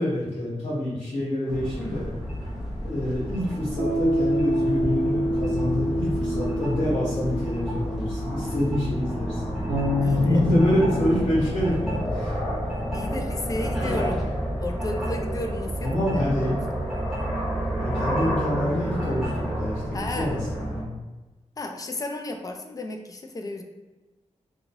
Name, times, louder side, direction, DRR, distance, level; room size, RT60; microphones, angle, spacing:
voice 1, 0.0-2.1 2.8-9.4 10.1-12.4 15.8-16.5 17.8-20.9, left 1 dB, 75° left, -12 dB, 1.4 m, -26 dB
sound 1, 1.5-20.8, equal, ahead, 0.7 m, -30 dB
Piano, 3.8-11.0, right 1 dB, 35° right, 0.5 m, -29 dB
Bass guitar, 9.7-12.7, left 3 dB, 65° right, 1.0 m, -28 dB
voice 2, 10.0-10.4 12.9-14.3 14.6-16.6 19.9-20.3 21.6-23.6, left 2 dB, 30° left, 3 dB, 0.3 m, -33 dB
3.0 x 2.7 x 2.7 m, 1.1 s
wide cardioid pair, 160°, 12 cm